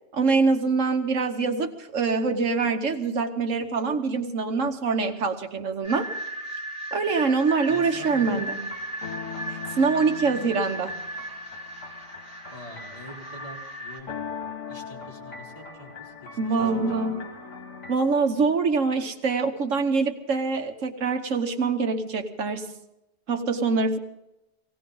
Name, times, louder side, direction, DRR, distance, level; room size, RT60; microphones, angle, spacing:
voice 1, 0.1-6.1 6.9-8.6 9.5-11.0 16.4-17.2 17.9-22.7 23.3-24.0, right 4 dB, 80° right, 6 dB, 1.5 m, -24 dB
sound 1, 5.8-14.0, right 2 dB, 5° right, 3.2 m, -36 dB
voice 2, 7.7-8.5 12.5-14.2 14.7-17.1, left 1 dB, 30° left, -3 dB, 3.6 m, -44 dB
sound 2, 7.9-18.0, left 5 dB, 75° left, 1.8 m, -40 dB
19.5 x 17.0 x 3.9 m, 0.87 s
omnidirectional pair, 1.3 m